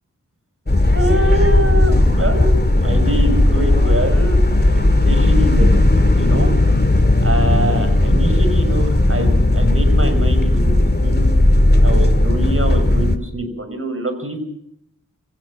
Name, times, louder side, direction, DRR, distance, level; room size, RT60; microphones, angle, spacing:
sound 1, 0.7-13.2, left 1 dB, 30° left, 2.8 m, -15 dB
voice 1, 0.9-6.5 7.2-11.3 11.8-14.4, right 1 dB, 40° right, 8 dB, 6.3 m, -24 dB
23.0 x 19.0 x 6.6 m, 0.72 s
cardioid pair, 50°, 33 cm